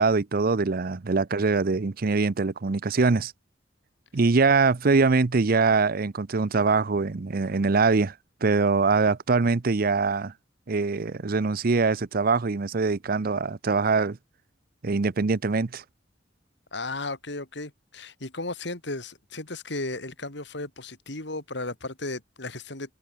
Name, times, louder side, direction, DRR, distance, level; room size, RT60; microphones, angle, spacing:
voice 1, 0.0-3.3 4.1-8.1 8.4-10.3 10.7-14.2 14.8-15.8, right 4 dB, 55° right, 0.7 m, -23 dB
voice 2, 16.7-22.9, left 2 dB, 70° left, 3.7 m, -35 dB
head